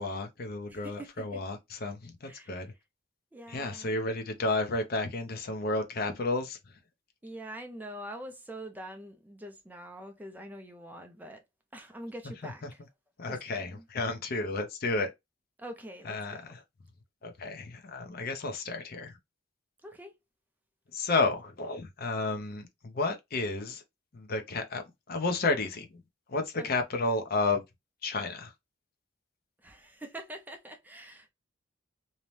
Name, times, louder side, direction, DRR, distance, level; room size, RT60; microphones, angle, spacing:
voice 1, 0.0-2.7 3.5-6.6 13.2-15.1 16.1-16.4 17.2-19.2 20.9-23.8 24.1-26.0 26.3-27.6 28.0-28.5, left 3 dB, 50° left, 0.6 m, -32 dB
voice 2, 0.7-1.4 2.2-2.8 3.3-4.0 7.2-11.4 11.7-12.8 13.2-13.9 15.6-16.6 19.8-20.2 26.6-26.7 29.6-31.3, right 1 dB, 10° right, 0.4 m, -45 dB
2.7 x 2.1 x 3.0 m
head